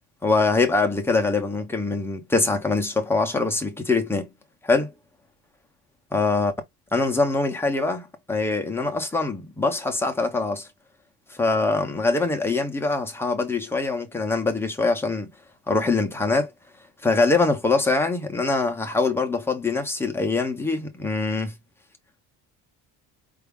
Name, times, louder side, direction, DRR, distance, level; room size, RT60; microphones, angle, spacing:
voice 1, 0.2-4.3 4.6-4.9 6.1-6.5 6.9-10.7 11.4-15.3 15.7-16.5 17.0-21.5, left 3 dB, 5° left, 0.3 m, -23 dB
4.7 x 2.3 x 3.4 m
cardioid pair, 180°, 40 cm